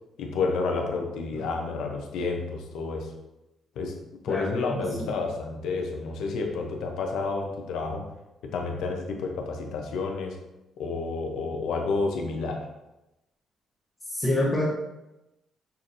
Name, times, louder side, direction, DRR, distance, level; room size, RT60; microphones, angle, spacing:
voice 1, 0.2-3.1 3.8-3.9 4.2-8.0 8.4-10.4 10.8-12.7, left 4 dB, 85° left, 2 dB, 0.6 m, -30 dB
voice 2, 4.3-5.1 14.1-14.6, left 1 dB, 25° left, -6 dB, 0.8 m, -28 dB
5.6 x 2.6 x 2.5 m, 0.95 s
cardioid pair, 90°, 0 cm